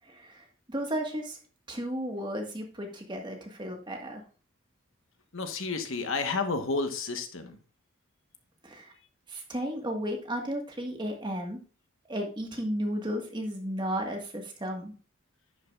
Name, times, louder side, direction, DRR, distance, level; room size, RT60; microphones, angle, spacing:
voice 1, 0.0-1.4 1.7-4.2 8.6-8.9 9.3-11.6 12.1-14.9, equal, 20° right, 2 dB, 1.5 m, -34 dB
voice 2, 5.3-7.6, left 4 dB, 65° left, 7 dB, 1.2 m, -31 dB
10.5 x 8.3 x 2.4 m, 0.38 s
head